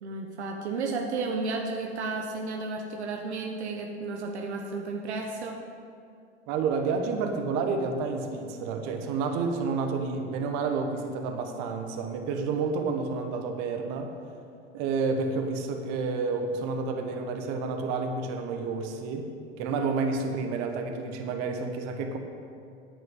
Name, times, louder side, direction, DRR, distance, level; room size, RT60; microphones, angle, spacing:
voice 1, 0.0-5.6, right 3 dB, 85° right, 1 dB, 1.0 m, -33 dB
voice 2, 6.5-14.1 14.7-19.3 19.6-22.2, right 4 dB, 55° right, 4 dB, 1.3 m, -30 dB
9.4 x 8.8 x 5.5 m, 2.5 s
hypercardioid pair, 90°, 33 cm